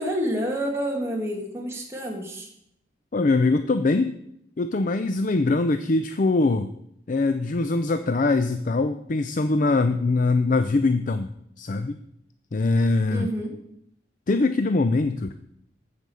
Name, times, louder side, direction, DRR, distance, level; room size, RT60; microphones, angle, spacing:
voice 1, 0.0-2.5 13.1-13.6, equal, 15° right, 0 dB, 1.9 m, -28 dB
voice 2, 3.1-4.2 4.6-6.7 7.1-11.3 11.6-12.0 12.5-13.3 14.3-15.3, left 3 dB, 45° left, 9 dB, 0.5 m, -22 dB
13.5 x 5.1 x 6.9 m, 0.75 s
head